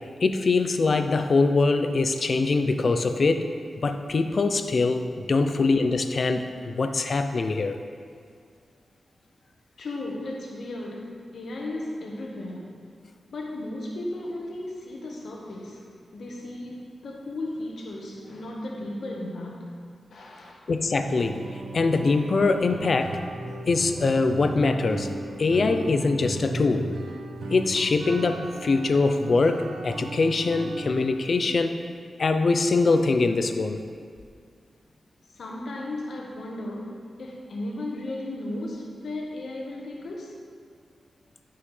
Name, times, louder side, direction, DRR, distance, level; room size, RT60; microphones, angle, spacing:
voice 1, 0.2-3.5 3.8-7.8 20.7-23.2 23.7-25.1 25.4-26.9 27.5-31.8 32.2-33.8, left 3 dB, 55° left, 7 dB, 0.5 m, -23 dB
voice 2, 9.8-12.7 13.3-20.6 35.3-36.9 37.2-40.4, left 1 dB, 75° left, -1 dB, 1.2 m, -35 dB
sound 1, 21.0-31.1, right 2 dB, 80° right, 0.7 m, -36 dB
11.5 x 5.6 x 3.3 m, 2.2 s
wide cardioid pair, 90°, 0 cm